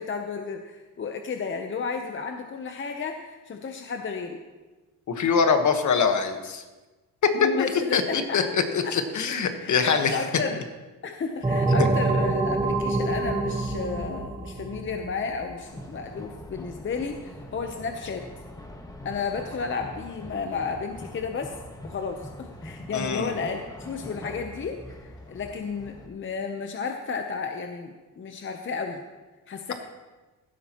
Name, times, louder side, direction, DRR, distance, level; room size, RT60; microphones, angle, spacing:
voice 1, 0.0-4.4 7.3-8.4 8.8-9.0 9.6-10.6 11.0-18.3 19.0-21.6 21.8-29.0 29.5-29.7, left 5 dB, 35° left, 4 dB, 0.8 m, -32 dB
voice 2, 5.1-6.6 7.4-7.5 7.9-10.2 22.9-23.3, left 6 dB, 50° left, 6 dB, 1.4 m, -23 dB
sound 1, 11.4-15.8, right 3 dB, 15° right, 1.0 m, -26 dB
sound 2, 15.7-26.1, left 1 dB, 10° left, 1.2 m, -43 dB
16.0 x 12.0 x 3.0 m, 1.2 s
cardioid pair, 120°, 36 cm